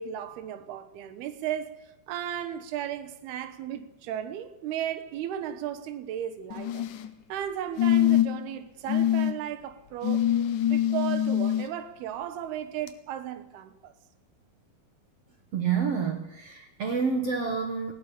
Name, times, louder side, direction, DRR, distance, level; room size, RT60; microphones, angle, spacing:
voice 1, 0.0-1.7 2.1-6.8 7.3-10.3 10.7-13.9, right 10 dB, 85° right, 3.2 m, -35 dB
sound 1, 6.5-7.1 7.8-8.5 8.9-9.3 10.0-11.6 12.9-13.0, left 11 dB, 65° left, 2.3 m, -24 dB
voice 2, 15.5-17.9, right 6 dB, 55° right, 2.0 m, -28 dB
19.0 x 16.5 x 8.6 m
omnidirectional pair, 4.5 m